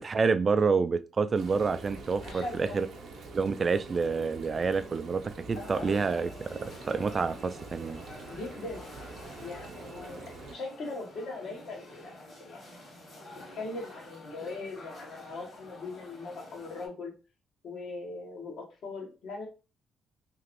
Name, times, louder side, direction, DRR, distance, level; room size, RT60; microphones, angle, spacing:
voice 1, 0.0-2.9 3.3-8.0, right 5 dB, 40° right, 0.3 m, -28 dB
Frying (food), 1.4-10.5, right 3 dB, 65° right, 0.7 m, -45 dB
voice 2, 2.2-2.8 5.5-6.0 8.3-8.9 9.4-10.2 10.5-12.1 12.4-12.6 13.5-17.1 17.6-19.5, left 3 dB, 70° left, 1.2 m, -40 dB
sound 1, 5.5-16.9, left 1 dB, 50° left, 1.6 m, -49 dB
2.9 x 2.5 x 3.0 m
cardioid pair, 90°, 0 cm